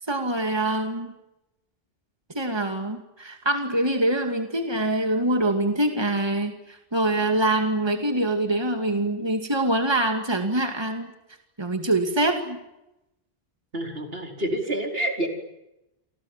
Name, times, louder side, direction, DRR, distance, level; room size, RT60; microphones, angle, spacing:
voice 1, 0.1-1.1 2.3-11.1 11.6-12.6, right 1 dB, 25° right, 5 dB, 2.6 m, -24 dB
voice 2, 13.7-15.3, right 1 dB, 70° right, 3 dB, 4.9 m, -28 dB
29.0 x 26.0 x 7.5 m, 0.91 s
omnidirectional pair, 1.0 m